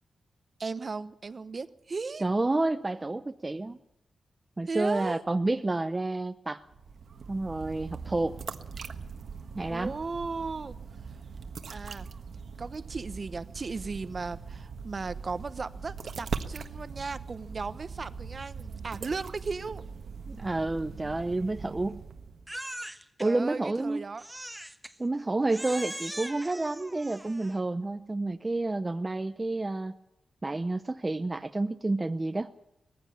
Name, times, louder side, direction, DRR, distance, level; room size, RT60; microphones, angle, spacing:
voice 1, 0.6-2.2 4.7-5.2 9.7-10.7 11.7-12.1 12.6-19.8 23.2-24.2, right 4 dB, 40° right, 13 dB, 1.0 m, -36 dB
voice 2, 2.2-3.8 4.6-6.6 7.3-8.4 9.5-9.9 20.3-22.0 23.2-24.1 25.0-30.0 30.4-32.5, right 2 dB, 20° right, 8 dB, 0.7 m, -29 dB
sound 1, 6.6-22.5, right 5 dB, 65° right, 1.4 m, -41 dB
Crying sobbing, 22.5-23.3 24.2-25.0 25.5-27.6, right 1 dB, 5° right, 1.3 m, -40 dB
20.0 x 15.0 x 8.6 m, 0.88 s
wide cardioid pair, 120°, 0 cm